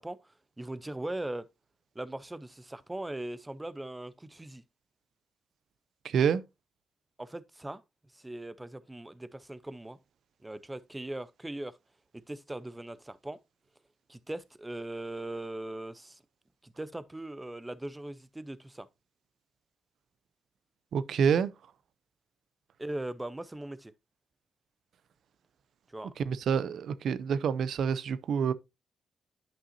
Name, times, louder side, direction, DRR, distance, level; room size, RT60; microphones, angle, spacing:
voice 1, 0.0-1.5 1.9-4.6 7.2-7.8 8.1-10.0 10.4-11.8 12.1-13.4 14.1-16.2 16.6-18.9 22.8-23.9 25.9-26.1, right 1 dB, 10° right, 0.6 m, -40 dB
voice 2, 6.0-6.4 20.9-21.5 26.2-28.5, right 7 dB, 70° right, 0.5 m, -27 dB
10.0 x 5.5 x 2.7 m
cardioid pair, 100°, 0 cm